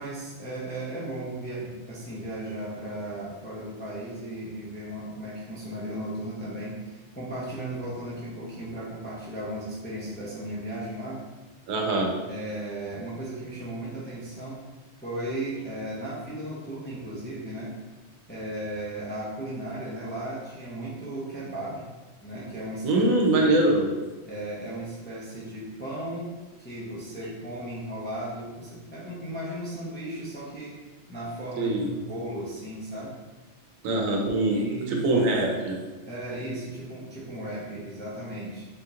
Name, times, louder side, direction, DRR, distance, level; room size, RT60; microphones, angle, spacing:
voice 1, 0.0-11.2 12.3-14.6 15.0-17.7 18.3-21.9 22.2-23.0 23.4-23.6 24.3-26.3 26.6-30.8 31.1-33.2 33.9-35.5 36.1-38.7, right 1 dB, 15° left, -7 dB, 0.4 m, -36 dB
voice 2, 11.7-12.1 22.8-23.9 31.6-31.9 33.8-34.6 34.9-35.8, right 2 dB, 85° right, 0 dB, 1.1 m, -23 dB
3.5 x 2.8 x 2.4 m, 1.2 s
omnidirectional pair, 1.4 m